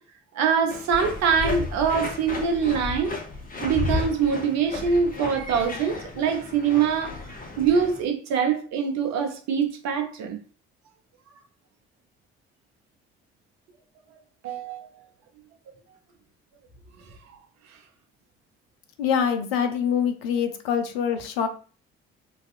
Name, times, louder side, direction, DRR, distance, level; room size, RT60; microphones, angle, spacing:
voice 1, 0.3-3.1 3.6-10.4 14.4-14.9, right 6 dB, 60° right, 0.6 m, -24 dB
sound 1, 0.7-8.0, left 3 dB, 30° left, 0.8 m, -33 dB
voice 2, 19.0-21.5, left 7 dB, 80° left, 0.4 m, -25 dB
2.5 x 2.4 x 2.4 m
figure-of-eight pair, 45°, 30 cm